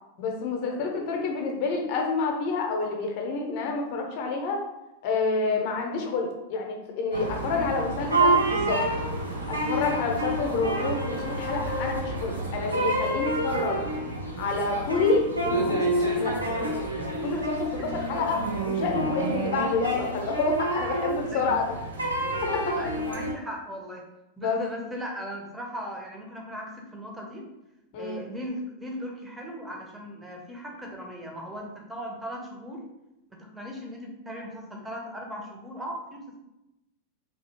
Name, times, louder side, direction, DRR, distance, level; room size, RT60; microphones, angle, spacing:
voice 1, 0.2-4.6 5.0-8.8 9.5-13.8 14.4-16.4 17.2-21.8 22.4-22.8 24.4-24.6 27.9-28.2, left 4 dB, 45° left, 2 dB, 0.7 m, -28 dB
voice 2, 0.7-1.0 5.4-5.7 7.4-7.9 10.2-10.3 17.3-17.4 17.8-18.0 21.3-21.5 22.7-24.1 24.4-27.4 28.0-32.8 33.4-36.4, equal, 10° right, -1 dB, 0.8 m, -38 dB
sound 1, 7.1-23.3, right 1 dB, 85° right, 0.6 m, -28 dB
3.5 x 2.7 x 2.9 m, 0.93 s
figure-of-eight pair, 90°, 0 cm